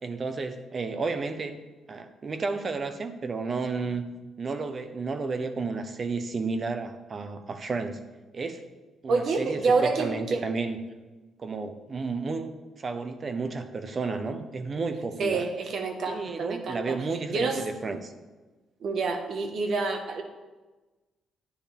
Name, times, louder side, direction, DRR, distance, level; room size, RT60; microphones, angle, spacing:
voice 1, 0.0-1.6 1.9-4.1 4.4-8.0 8.3-8.6 9.0-10.8 11.4-12.5 12.8-15.4 16.1-18.1, right 4 dB, 40° right, 9 dB, 1.0 m, -32 dB
voice 2, 9.1-10.4 15.2-17.0 17.3-17.6 18.8-20.2, right 4 dB, 60° right, 5 dB, 1.4 m, -27 dB
11.5 x 9.8 x 3.5 m, 1.2 s
cardioid pair, 90°, 0 cm